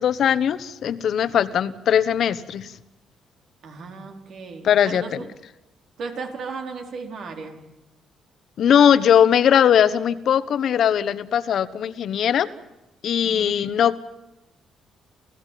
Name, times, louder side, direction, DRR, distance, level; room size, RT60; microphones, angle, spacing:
voice 1, 0.0-2.7 4.6-5.0 8.6-12.5 13.0-14.0, left 9 dB, 65° left, 15 dB, 1.2 m, -19 dB
voice 2, 3.6-5.2 6.0-7.6 13.2-13.5, right 4 dB, 65° right, 4 dB, 4.4 m, -35 dB
29.5 x 15.5 x 9.3 m, 0.98 s
cardioid pair, 90°, 0 cm